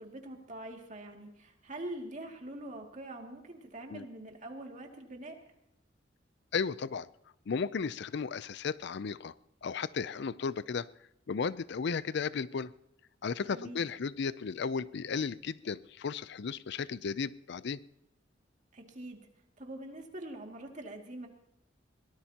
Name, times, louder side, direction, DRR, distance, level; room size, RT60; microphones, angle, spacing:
voice 1, 0.0-5.4 13.4-13.8 18.7-19.2 19.6-21.3, right 1 dB, 40° right, 2 dB, 2.4 m, -44 dB
voice 2, 6.5-7.1 7.5-9.3 9.6-10.9 11.3-12.7 13.2-17.8, left 5 dB, 60° left, 17 dB, 0.5 m, -34 dB
22.5 x 18.0 x 2.9 m, 0.83 s
head